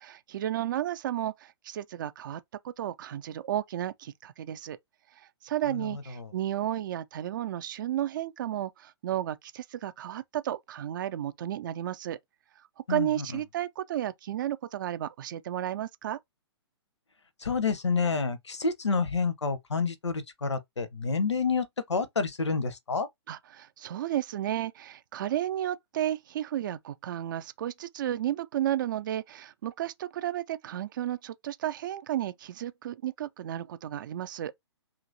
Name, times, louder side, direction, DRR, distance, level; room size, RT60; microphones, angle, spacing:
voice 1, 0.0-4.8 5.4-12.2 12.9-16.2 23.3-34.5, right 12 dB, 45° right, 0.4 m, -33 dB
voice 2, 5.7-6.3 12.9-13.4 17.4-23.1, left 4 dB, 85° left, 0.6 m, -29 dB
2.9 x 2.5 x 2.6 m
figure-of-eight pair, 125°, 14 cm